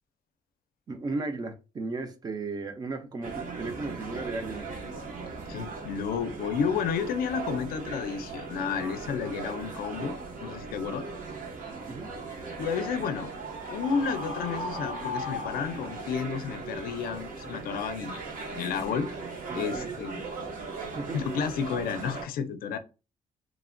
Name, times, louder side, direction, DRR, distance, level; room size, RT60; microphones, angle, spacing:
voice 1, 0.9-4.7 11.9-12.1 19.5-19.9 20.9-21.2, right 3 dB, 25° right, 0.4 m, -35 dB
sound 1, 3.2-22.2, right 4 dB, 65° right, 0.8 m, -39 dB
voice 2, 5.5-11.1 12.6-13.3 13.7-19.1 19.5-20.2 21.1-22.8, left 6 dB, 85° left, 0.4 m, -31 dB
Screaming, 13.5-16.2, left 2 dB, 85° right, 1.6 m, -37 dB
3.1 x 2.1 x 2.4 m
wide cardioid pair, 170°, 15 cm